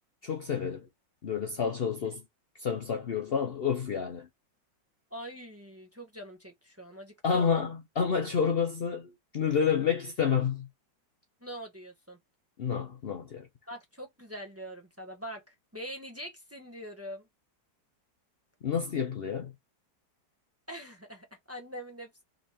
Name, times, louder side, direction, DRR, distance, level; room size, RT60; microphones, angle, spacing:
voice 1, 0.2-0.9 1.2-2.2 2.6-4.3 7.2-10.7 12.6-13.5 18.6-19.5, left 6 dB, 80° left, 0.5 m, -29 dB
voice 2, 5.1-7.5 11.4-12.2 13.7-15.4 15.7-17.3 20.7-22.2, equal, 10° right, 0.9 m, -43 dB
3.9 x 3.2 x 4.2 m
omnidirectional pair, 2.0 m